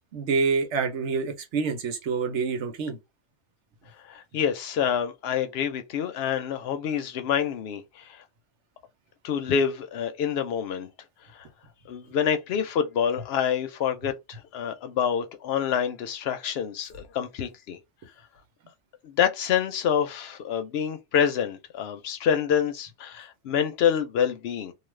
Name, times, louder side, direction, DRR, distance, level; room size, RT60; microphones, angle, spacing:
voice 1, 0.1-3.0, right 5 dB, 90° right, 1.1 m, -27 dB
voice 2, 4.1-8.2 9.2-10.9 11.3-11.5 11.9-17.8 19.0-24.7, left 8 dB, 65° left, 0.8 m, -27 dB
2.4 x 2.3 x 3.1 m
omnidirectional pair, 1.2 m